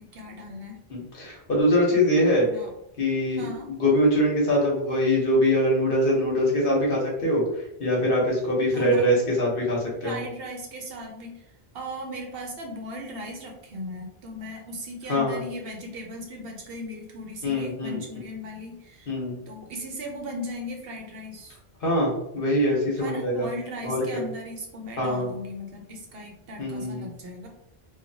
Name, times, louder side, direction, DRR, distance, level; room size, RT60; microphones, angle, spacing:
voice 1, 0.0-0.8 2.4-2.7 3.4-3.7 8.7-9.1 10.0-11.5 11.7-19.1 19.5-21.5 23.0-27.5, equal, 70° right, 1 dB, 0.9 m, -37 dB
voice 2, 0.9-2.5 3.0-3.4 3.8-10.2 15.1-15.4 17.4-18.0 19.1-19.4 21.8-23.5 23.8-24.2 25.0-25.3 26.6-27.1, equal, 60° left, -2 dB, 1.0 m, -23 dB
2.9 x 2.3 x 2.6 m, 0.83 s
omnidirectional pair, 1.0 m